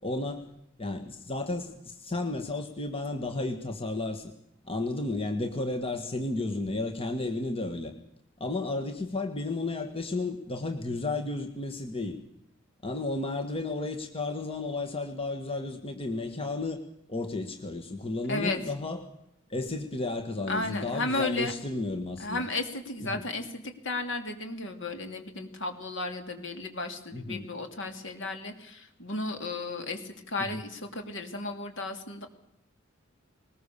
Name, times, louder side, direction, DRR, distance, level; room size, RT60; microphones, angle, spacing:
voice 1, 0.0-0.5 0.8-4.3 4.7-7.9 8.4-12.2 12.8-16.8 17.1-19.0 19.5-22.4 23.1-23.2 27.1-27.4 30.5-30.6, left 2 dB, 25° left, 6 dB, 1.6 m, -33 dB
voice 2, 18.3-18.6 20.5-21.5 22.2-32.3, left 2 dB, 60° left, 6 dB, 2.9 m, -34 dB
21.0 x 20.0 x 6.9 m, 0.81 s
head